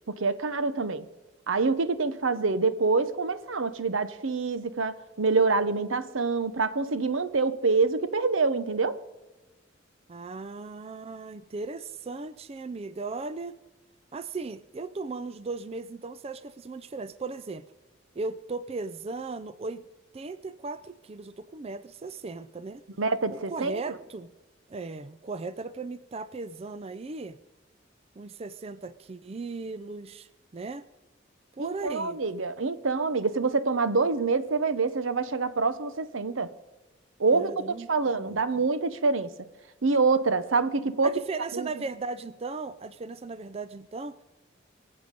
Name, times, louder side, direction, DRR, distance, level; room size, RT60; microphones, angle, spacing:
voice 1, 0.1-1.0 1.5-9.0 23.0-23.9 31.6-36.5 37.2-37.5 37.9-39.3 39.8-41.1 41.5-41.7, right 4 dB, 80° right, 14 dB, 0.9 m, -26 dB
voice 2, 10.1-13.6 14.1-17.6 18.2-19.8 20.1-22.8 23.3-24.3 24.7-27.4 28.2-30.9 31.5-32.2 37.3-38.4 41.0-44.2, right 3 dB, 30° right, 14 dB, 0.4 m, -37 dB
23.5 x 8.0 x 5.2 m, 1.1 s
head